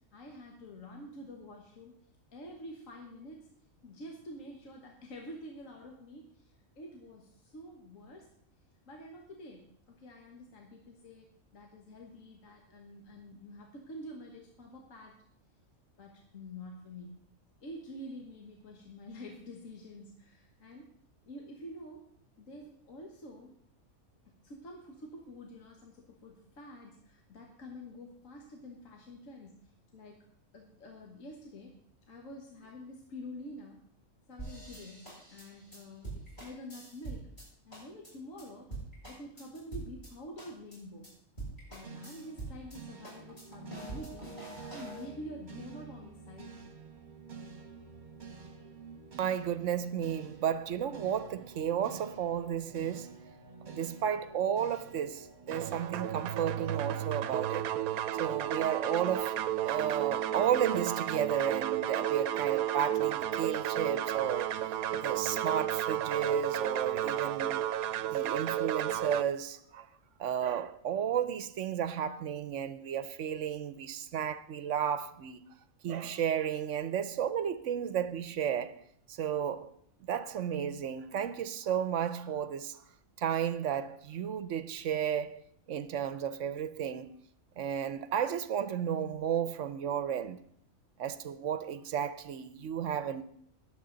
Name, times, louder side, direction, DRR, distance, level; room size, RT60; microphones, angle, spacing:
voice 1, 0.1-2.0 2.3-3.5 3.8-8.3 8.9-15.1 16.0-17.2 17.6-20.9 21.2-22.0 22.4-23.5 24.4-29.7 29.9-30.2 30.5-31.8 32.1-33.8 34.3-37.3 37.7-38.7 39.1-41.1 41.7-44.3 44.7-46.6, left 1 dB, 65° left, 1.8 m, -47 dB
sound 1, 34.4-37.4 37.7-38.1 38.4-38.5 38.7-40.1 40.4-40.8 41.0-41.1 41.4-42.8 43.0-45.0, right 3 dB, 35° left, 6.3 m, -44 dB
sound 2, 41.8-58.1, right 5 dB, 35° right, 1.2 m, -50 dB
voice 2, 49.2-53.2 53.7-57.7 58.1-59.3 59.6-64.5 64.9-67.7 68.1-69.9 70.2-75.4 75.8-78.8 79.1-79.7 80.0-82.8 83.2-85.4 85.7-87.1 87.6-90.4 91.0-93.2, right 9 dB, 65° right, 1.0 m, -33 dB
sound 3, 55.5-69.2, right 11 dB, 90° right, 1.1 m, -32 dB
20.0 x 7.7 x 3.9 m
omnidirectional pair, 1.5 m